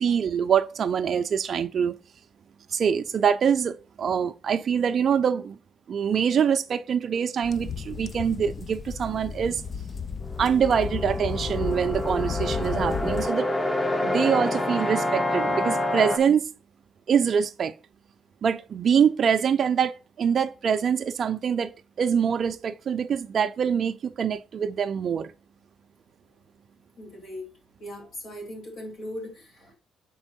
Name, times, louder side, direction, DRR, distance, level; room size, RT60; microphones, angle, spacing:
voice 1, 0.0-1.9 2.7-5.6 5.9-9.6 10.4-13.5 14.0-16.4 17.1-17.7 18.4-21.7 22.0-25.3, right 7 dB, 55° right, 0.5 m, -24 dB
sound 1, 7.4-13.3, left 6 dB, 40° left, 0.5 m, -33 dB
sound 2, 10.2-16.2, left 1 dB, 15° left, 1.1 m, -27 dB
voice 2, 27.0-27.5 27.8-29.8, left 1 dB, 65° left, 3.6 m, -39 dB
6.1 x 4.5 x 4.3 m
cardioid pair, 90°, 0 cm